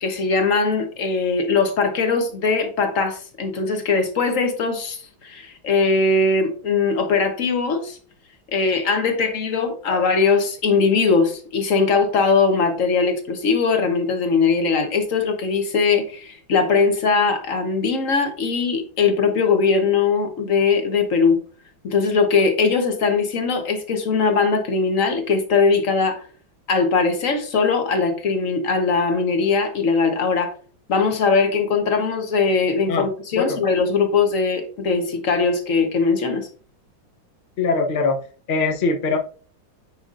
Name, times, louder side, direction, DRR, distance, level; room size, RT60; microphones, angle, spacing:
voice 1, 0.0-8.0 8.5-21.4 21.8-26.2 26.7-30.5 30.9-36.5, left 4 dB, 50° left, 6 dB, 1.2 m, -20 dB
voice 2, 37.6-38.2 38.5-39.2, left 4 dB, 85° left, 5 dB, 0.4 m, -21 dB
9.4 x 5.0 x 2.5 m, 0.41 s
omnidirectional pair, 2.1 m